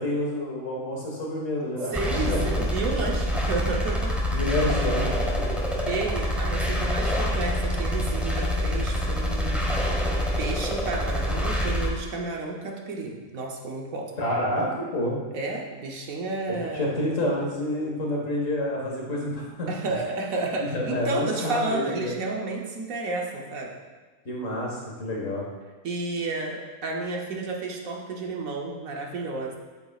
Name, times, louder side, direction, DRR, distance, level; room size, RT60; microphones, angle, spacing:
voice 1, 0.0-2.6 4.3-5.5 14.1-15.2 16.7-19.7 20.6-22.2 24.3-25.5, left 1 dB, 60° left, -3 dB, 1.9 m, -28 dB
sound 1, 1.9-11.9, equal, ahead, 1.0 m, -26 dB
voice 2, 1.9-4.2 5.9-10.0 10.4-14.1 15.3-16.9 19.7-23.7 25.8-29.6, right 3 dB, 70° right, 0 dB, 1.3 m, -31 dB
sound 2, 4.1-6.1 7.9-9.9 11.8-11.9, left 7 dB, 80° left, 1.2 m, -40 dB
8.1 x 7.9 x 2.4 m, 1.3 s
omnidirectional pair, 1.6 m